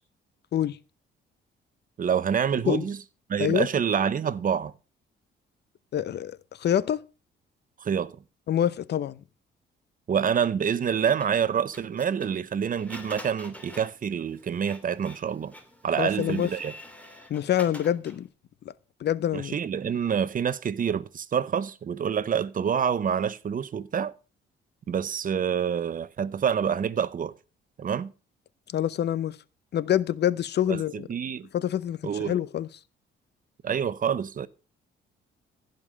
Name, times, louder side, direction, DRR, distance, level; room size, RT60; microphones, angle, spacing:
voice 1, 2.0-3.0 3.3-4.7 7.8-8.2 10.1-15.5 15.8-16.7 19.3-24.1 24.9-27.3 27.8-28.1 30.7-31.5 32.0-32.4 33.6-34.5, right 7 dB, 45° right, 0.8 m, -27 dB
voice 2, 5.9-7.0 8.5-9.2 16.0-16.5 17.3-18.3 19.0-19.5 28.7-29.4 29.7-31.1 31.5-32.7, left 10 dB, 60° left, 0.7 m, -26 dB
Printer, 11.1-18.3, equal, 5° left, 2.8 m, -47 dB
15.5 x 5.4 x 6.3 m
cardioid pair, 90°, 20 cm